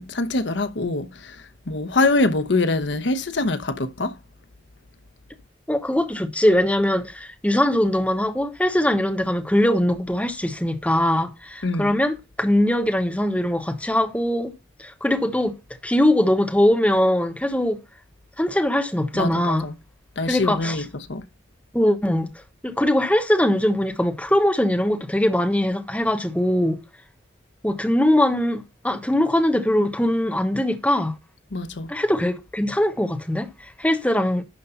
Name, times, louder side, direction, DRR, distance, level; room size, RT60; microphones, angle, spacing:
voice 1, 0.0-1.3 1.7-4.1 11.6-12.0 19.1-19.7 20.2-20.8 21.1-21.2 31.5-31.9, left 2 dB, 85° left, 1.0 m, -24 dB
voice 2, 5.7-14.5 14.8-15.6 15.8-17.8 18.4-19.7 20.3-20.8 21.7-22.3 22.6-26.8 27.6-31.2 31.9-33.5 33.8-34.4, left 1 dB, 10° left, 1.1 m, -21 dB
11.5 x 3.8 x 5.5 m
head